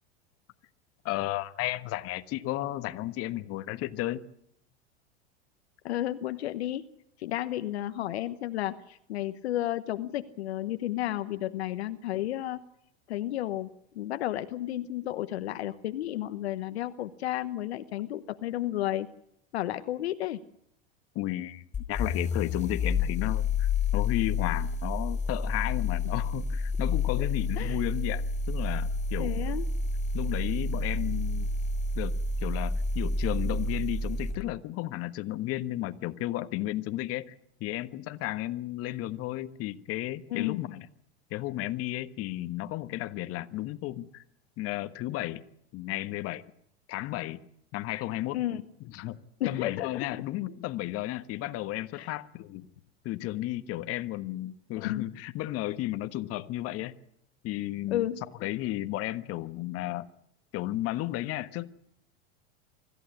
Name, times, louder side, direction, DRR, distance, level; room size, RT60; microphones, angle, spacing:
voice 1, 1.0-4.2 21.1-29.3 30.1-31.5 31.9-32.1 32.4-37.3 37.6-40.9 41.3-44.2 44.6-45.4 45.7-46.5 46.9-47.4 47.7-48.4 48.9-49.2 49.4-52.6 53.0-56.9 57.4-58.1 58.4-60.1 60.5-61.7, left 15 dB, 45° left, 1.3 m, -33 dB
voice 2, 5.8-6.8 7.2-12.6 13.1-19.1 19.5-20.4 27.6-27.8 29.2-29.7 40.3-40.6 48.3-48.6 49.4-50.1 51.9-52.2 54.8-55.1 57.9-58.2, left 13 dB, 75° left, 1.1 m, -32 dB
sound 1, 21.7-34.4, left 3 dB, 20° left, 5.1 m, -29 dB
25.0 x 14.5 x 9.8 m
hypercardioid pair, 95°, 32 cm